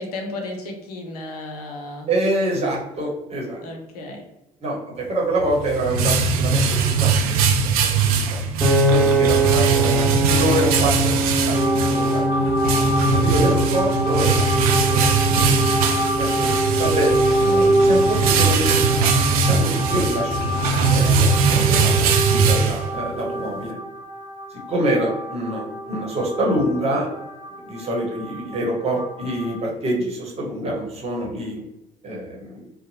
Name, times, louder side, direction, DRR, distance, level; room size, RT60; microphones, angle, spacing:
voice 1, 0.0-2.1 3.6-4.2 12.4-12.9, left 2 dB, 70° left, 2 dB, 0.6 m, -34 dB
voice 2, 2.1-3.6 4.6-8.4 8.7-12.3 13.1-15.5 16.2-23.8 24.7-27.1 27.6-31.6 32.0-32.6, right 1 dB, 30° right, -2 dB, 1.0 m, -26 dB
sound 1, 5.4-23.2, right 4 dB, 65° right, 0.4 m, -21 dB
Piano, 8.6-20.9, right 1 dB, ahead, 0.7 m, -25 dB
sound 2, 11.5-29.6, right 1 dB, 40° left, 1.1 m, -25 dB
2.6 x 2.0 x 2.7 m, 0.93 s
figure-of-eight pair, 55°, 20 cm